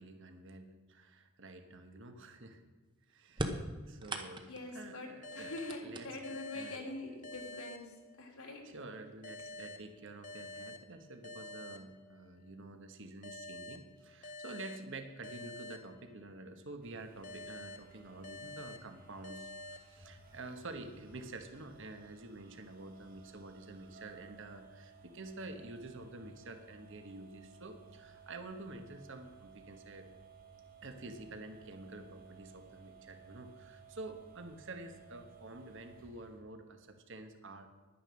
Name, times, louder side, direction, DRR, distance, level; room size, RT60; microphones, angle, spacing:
voice 1, 0.0-2.6 3.1-6.1 6.5-6.8 8.6-30.1 30.8-37.7, right 2 dB, 60° right, 7 dB, 1.2 m, -49 dB
sound 1, 3.3-4.7 5.3-6.5 7.5-7.6 8.6-8.7 9.2-9.7, right 1 dB, 20° right, 0.9 m, -40 dB
voice 2, 4.5-5.1 5.3-7.9 8.2-8.6, left 2 dB, 90° left, -1 dB, 3.2 m, -44 dB
sound 2, 5.2-8.6 9.2-12.5 13.2-16.6 17.2-20.5, left 2 dB, 35° left, 0.8 m, -49 dB
sound 3, 16.8-36.4, right 4 dB, 40° right, 1.6 m, -58 dB
10.5 x 10.0 x 6.3 m, 1.3 s
head